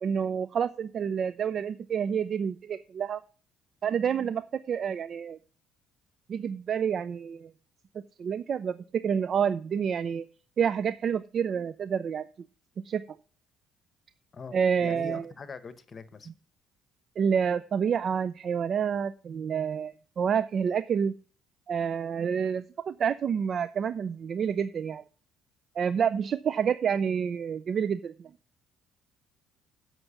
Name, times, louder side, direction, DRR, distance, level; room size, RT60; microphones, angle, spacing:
voice 1, 0.0-3.2 3.8-5.4 6.3-7.5 8.2-10.3 10.6-12.3 12.8-13.0 14.5-15.3 17.2-21.1 21.7-25.0 25.8-28.3, right 7 dB, 45° right, 0.4 m, -28 dB
voice 2, 14.3-16.3, left 5 dB, 35° left, 1.1 m, -43 dB
7.8 x 6.0 x 7.0 m
cardioid pair, 100°, 0 cm